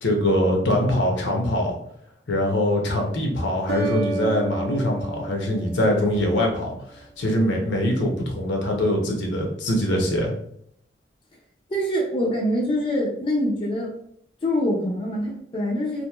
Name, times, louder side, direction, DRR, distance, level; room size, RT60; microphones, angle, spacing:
voice 1, 0.0-1.8 2.3-10.3, left 1 dB, 80° left, 1 dB, 0.7 m, -23 dB
sound 1, 2.5-3.0 3.7-6.6, right 2 dB, 55° right, 0.3 m, -32 dB
voice 2, 11.7-13.9 14.4-16.1, equal, 30° left, -2 dB, 0.4 m, -24 dB
2.9 x 2.5 x 2.3 m, 0.69 s
head